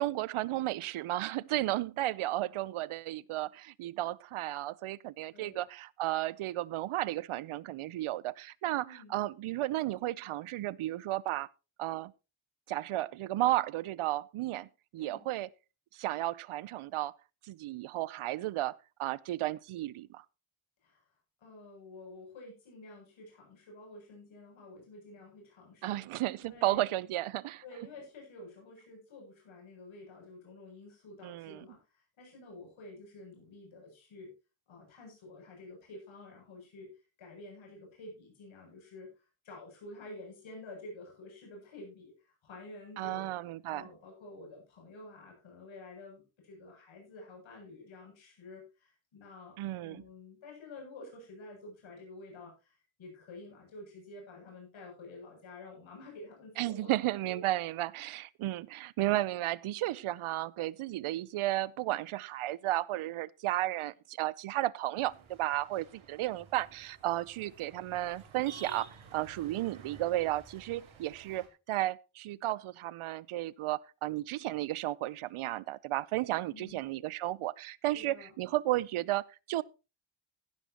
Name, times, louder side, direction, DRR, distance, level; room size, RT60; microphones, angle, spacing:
voice 1, 0.0-11.5 11.8-12.1 12.7-14.7 14.9-15.5 15.9-17.1 17.4-20.2 25.8-27.6 31.2-31.6 43.0-43.9 49.6-50.0 56.6-79.6, right 15 dB, 90° right, 0.7 m, -33 dB
voice 2, 8.8-9.1 15.0-15.3 20.8-21.0 21.4-26.0 26.4-26.8 27.6-34.3 34.7-36.9 37.2-39.1 39.4-43.3 43.7-56.9 57.2-57.4 58.0-58.1 76.5-76.8 77.9-78.4, left 2 dB, 70° left, 7.9 m, -50 dB
sound 1, 65.0-71.5, right 5 dB, 75° right, 4.4 m, -53 dB
16.0 x 11.5 x 2.9 m
wide cardioid pair, 150°, 48 cm